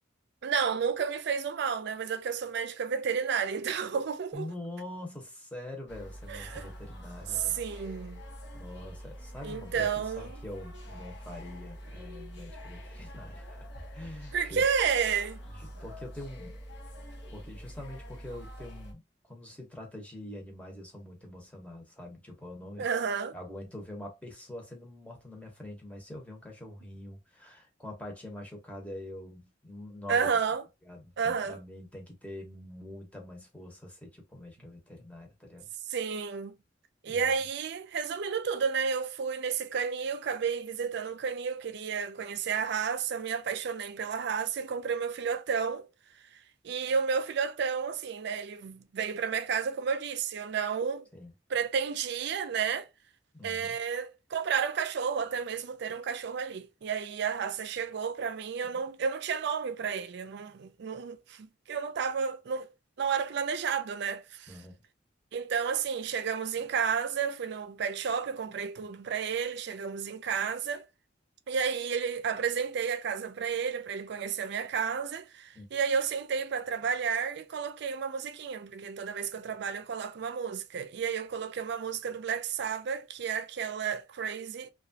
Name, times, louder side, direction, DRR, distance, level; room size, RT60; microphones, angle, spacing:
voice 1, 0.4-4.5 6.3-6.7 7.3-8.2 9.4-10.4 14.3-15.4 22.8-23.4 30.1-30.6 31.2-31.6 35.9-36.5 37.0-45.9 46.3-51.1 51.5-52.9 53.4-62.7 63.0-64.5 65.3-70.9 71.5-84.7, right 6 dB, 60° right, 0.4 m, -31 dB
voice 2, 4.3-7.6 8.5-13.5 13.9-14.6 15.6-16.6 17.3-22.9 23.3-30.3 30.9-35.7 37.1-37.3 51.1-51.3 53.3-53.7 58.7-58.8 64.5-64.7 75.5-75.7, left 1 dB, 10° left, 0.8 m, -44 dB
sound 1, 5.9-18.9, equal, 65° left, 0.8 m, -45 dB
2.9 x 2.3 x 2.6 m
head